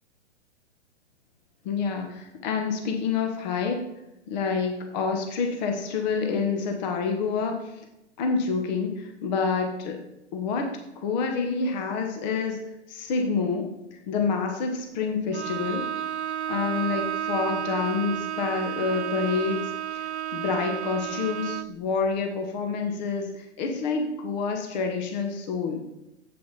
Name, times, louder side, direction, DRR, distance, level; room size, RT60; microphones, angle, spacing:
voice 1, 1.6-3.8 4.3-7.7 8.2-10.0 10.3-15.9 16.5-19.6 19.9-20.0 20.3-25.8, left 5 dB, 35° left, 4 dB, 1.3 m, -28 dB
Bowed string instrument, 15.3-21.8, right 10 dB, 70° right, 0.5 m, -32 dB
8.3 x 8.1 x 4.1 m, 0.91 s
figure-of-eight pair, 115°, 36 cm